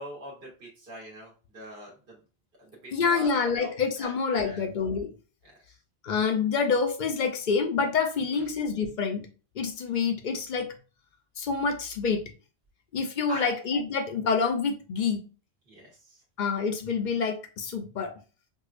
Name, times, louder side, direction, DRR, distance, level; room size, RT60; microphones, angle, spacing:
voice 1, 0.0-2.2 2.6-4.6 5.4-5.6 8.3-8.5 13.3-13.5 15.7-16.2, equal, 60° right, -2 dB, 1.2 m, -43 dB
voice 2, 2.9-5.1 6.0-9.2 9.6-10.7 11.4-12.2 12.9-15.2 16.4-18.1, left 5 dB, 55° left, 5 dB, 0.6 m, -27 dB
4.7 x 2.2 x 2.4 m, 0.35 s
omnidirectional pair, 1.1 m